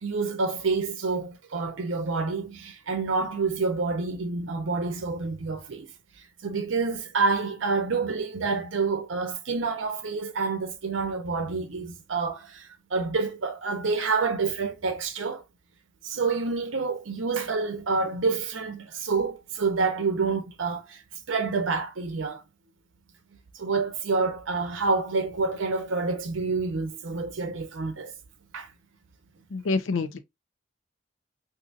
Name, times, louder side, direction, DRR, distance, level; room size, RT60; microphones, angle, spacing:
voice 1, 0.0-5.9 6.4-15.4 16.0-21.0 21.3-22.4 23.6-28.1 28.5-28.7, right 4 dB, 85° right, 0.7 m, -28 dB
voice 2, 29.5-30.2, left 3 dB, 90° left, 0.5 m, -27 dB
3.9 x 2.7 x 2.4 m
head